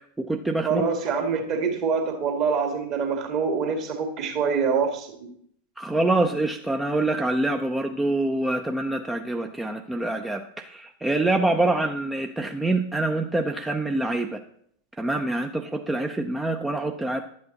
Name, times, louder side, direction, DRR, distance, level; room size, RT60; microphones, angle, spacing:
voice 1, 0.0-0.9 5.8-14.4 15.0-17.2, right 2 dB, 10° right, 5 dB, 0.6 m, -25 dB
voice 2, 0.6-5.3, right 5 dB, 40° right, 4 dB, 2.0 m, -25 dB
11.5 x 8.5 x 4.0 m, 0.67 s
figure-of-eight pair, 90°, 0 cm